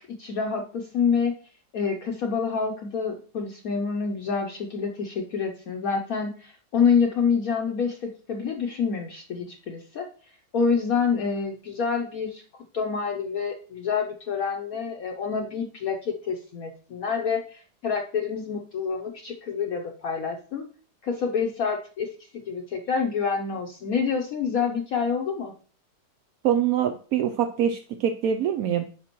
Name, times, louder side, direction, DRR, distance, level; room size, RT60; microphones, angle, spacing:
voice 1, 0.1-1.4 1.7-10.1 10.5-12.4 12.7-20.7 21.0-25.5, left 6 dB, 60° left, 2 dB, 1.0 m, -27 dB
voice 2, 26.4-28.8, right 9 dB, 70° right, 6 dB, 0.8 m, -24 dB
9.3 x 5.8 x 3.0 m, 0.40 s
omnidirectional pair, 2.0 m